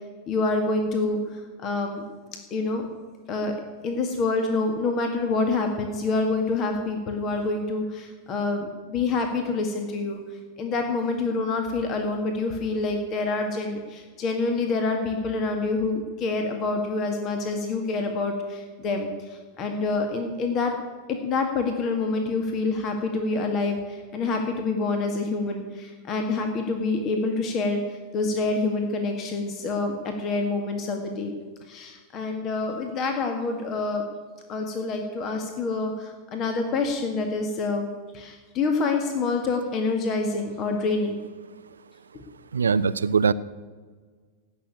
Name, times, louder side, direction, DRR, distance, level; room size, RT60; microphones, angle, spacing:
voice 1, 0.3-2.0 2.5-2.9 3.3-3.6 3.8-10.2 10.6-20.8 21.1-31.3 31.7-34.1 34.5-37.9 38.1-41.2, left 3 dB, 35° left, 4 dB, 1.8 m, -27 dB
voice 2, 42.5-43.3, right 5 dB, 70° right, 17 dB, 0.5 m, -21 dB
17.5 x 6.7 x 9.2 m, 1.5 s
figure-of-eight pair, 90°, 0 cm